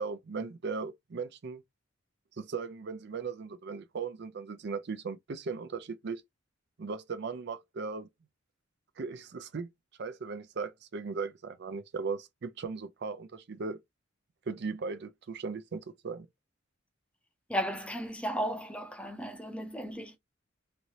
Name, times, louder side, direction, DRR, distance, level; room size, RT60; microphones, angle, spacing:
voice 1, 0.0-1.6 2.4-6.2 6.8-8.1 9.0-9.7 10.0-13.8 14.5-16.3, right 4 dB, 55° right, 0.4 m, -37 dB
voice 2, 17.5-20.2, equal, 5° left, 0.6 m, -35 dB
3.1 x 2.6 x 2.9 m
head